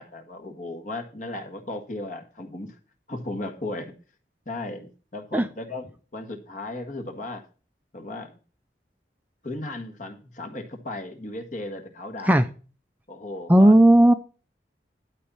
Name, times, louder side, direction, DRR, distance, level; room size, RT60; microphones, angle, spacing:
voice 1, 0.0-2.8 3.1-3.9 4.4-5.9 6.1-7.4 7.9-8.3 9.4-12.4 13.1-13.8, left 2 dB, 45° left, 6 dB, 1.6 m, -35 dB
voice 2, 13.5-14.1, right 1 dB, 10° right, 8 dB, 0.5 m, -14 dB
12.0 x 4.2 x 7.0 m, 0.36 s
head